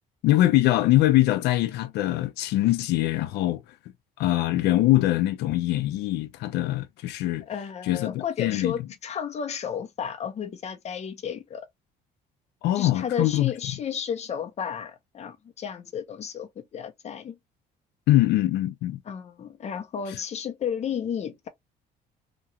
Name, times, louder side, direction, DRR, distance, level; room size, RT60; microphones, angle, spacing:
voice 1, 0.2-3.6 4.2-7.4 7.9-8.7 12.6-13.5 18.1-19.0, left 15 dB, 80° left, 0.5 m, -23 dB
voice 2, 7.4-11.7 12.7-17.4 19.0-21.5, left 7 dB, 40° left, 0.7 m, -33 dB
3.0 x 2.4 x 2.7 m
cardioid pair, 110°, 17 cm